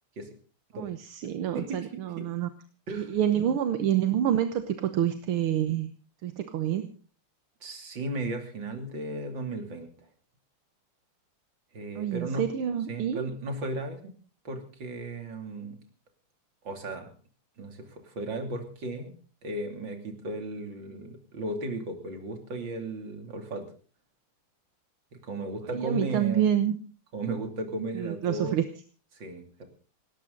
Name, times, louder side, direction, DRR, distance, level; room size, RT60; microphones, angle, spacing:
voice 1, 0.7-2.5 2.9-5.9 6.2-6.9 12.0-13.3 25.7-26.8 27.9-28.6, right 10 dB, 80° right, 9 dB, 1.9 m, -27 dB
voice 2, 1.5-2.3 2.9-3.1 7.6-9.9 11.7-12.4 12.9-14.1 14.5-15.8 16.6-17.1 17.6-19.1 19.4-23.7 25.2-26.4 27.1-28.6 29.1-29.6, right 2 dB, 55° right, 5 dB, 3.5 m, -35 dB
19.0 x 18.0 x 3.9 m, 0.39 s
omnidirectional pair, 2.4 m